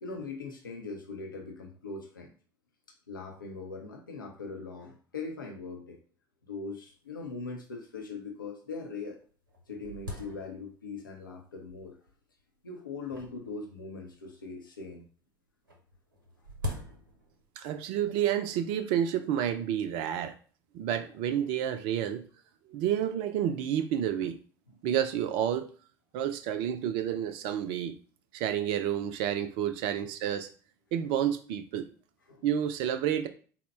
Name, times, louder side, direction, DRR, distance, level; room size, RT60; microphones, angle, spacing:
voice 1, 0.0-2.3 3.1-6.0 6.5-9.2 9.7-12.0 12.6-15.0 20.0-20.3 21.3-21.5 24.7-24.8 30.0-30.2 32.3-32.6, left 4 dB, 80° left, 1 dB, 0.6 m, -41 dB
sound 1, 6.9-7.0 7.2-7.3 8.0-8.1 8.7-8.8 9.2-11.0 11.7-12.1 13.1-14.4 15.7-17.5, left 2 dB, 80° right, 0.7 m, -42 dB
voice 2, 17.6-20.3 20.7-22.3 22.7-24.4 24.8-25.7 26.1-28.0 28.3-30.5 30.9-31.9 32.4-33.3, right 10 dB, 55° right, 9 dB, 0.4 m, -30 dB
4.2 x 2.1 x 4.2 m, 0.42 s
figure-of-eight pair, 65°, 11 cm